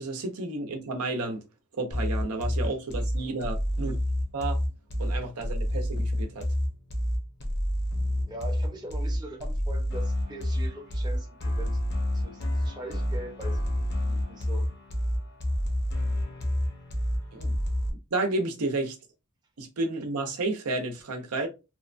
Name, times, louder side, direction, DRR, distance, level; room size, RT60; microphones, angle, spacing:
voice 1, 0.0-1.4 1.7-4.0 4.3-4.6 5.0-6.5 17.3-17.6 18.1-19.0 19.6-21.5, right 2 dB, 80° right, 0.6 m, -31 dB
sound 1, 1.9-17.9, left 1 dB, 50° left, 0.7 m, -29 dB
voice 2, 8.3-11.8 12.1-14.7, right 1 dB, 20° right, 0.6 m, -42 dB
2.9 x 2.1 x 2.4 m
head